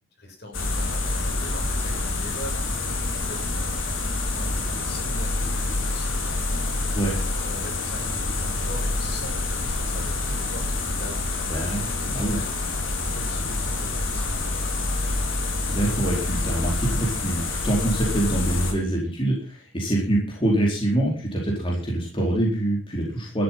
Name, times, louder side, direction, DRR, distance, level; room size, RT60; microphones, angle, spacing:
voice 1, 0.2-2.7 3.0-6.4 7.2-12.5 12.9-14.5, equal, 55° left, 2 dB, 7.0 m, -42 dB
sound 1, 0.5-18.7, left 2 dB, 75° left, 4.7 m, -27 dB
voice 2, 11.5-12.4 15.7-23.4, right 1 dB, 25° left, -2 dB, 4.8 m, -25 dB
13.5 x 13.0 x 5.9 m, 0.39 s
head